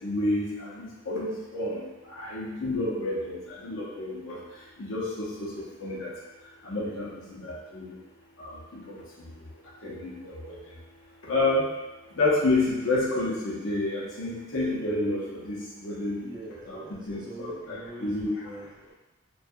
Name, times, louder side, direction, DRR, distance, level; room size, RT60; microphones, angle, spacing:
voice 1, 0.0-4.4 4.8-5.5 5.8-6.1 6.6-8.0 8.4-9.0 9.8-10.6 11.2-11.7 12.2-16.2 16.7-16.8 17.1-18.3, left 2 dB, 80° left, -5 dB, 0.7 m, -29 dB
voice 2, 16.2-18.9, right 1 dB, 25° right, -5 dB, 0.5 m, -44 dB
2.6 x 2.3 x 2.3 m, 1.0 s
head